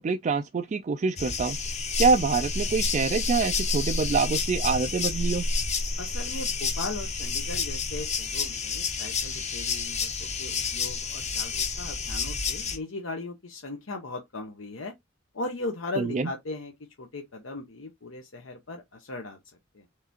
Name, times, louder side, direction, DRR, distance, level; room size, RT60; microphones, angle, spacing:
voice 1, 0.0-1.6 2.0-5.5 16.0-16.3, right 4 dB, 35° right, 0.3 m, -26 dB
Ambience Cowntryside Day crickets Atlantic Forest Brazil, 1.2-12.8, left 4 dB, 35° left, 0.9 m, -29 dB
voice 2, 6.0-14.9 15.3-19.4 19.7-19.8, left 2 dB, 75° left, 0.9 m, -38 dB
4.8 x 3.4 x 2.8 m
head